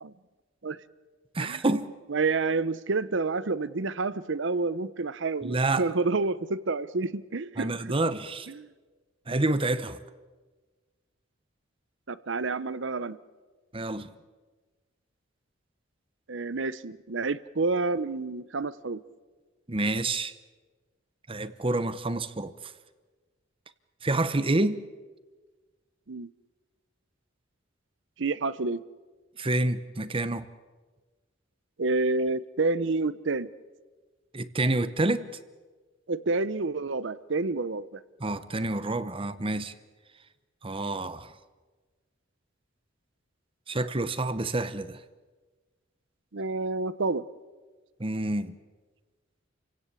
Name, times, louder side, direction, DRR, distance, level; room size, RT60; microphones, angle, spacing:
voice 1, 1.3-1.9 5.4-5.9 7.6-8.5 9.3-10.0 13.7-14.1 19.7-20.3 21.3-22.5 24.0-24.8 29.4-30.5 34.3-35.2 38.2-39.7 40.6-41.3 43.7-45.0 48.0-48.5, right 2 dB, 30° right, 1.0 m, -28 dB
voice 2, 2.1-7.9 8.5-8.7 12.1-13.2 16.3-19.0 26.1-26.3 28.2-28.8 31.8-33.5 36.1-38.0 46.3-47.3, right 3 dB, 70° right, 0.8 m, -29 dB
29.0 x 17.0 x 8.4 m
head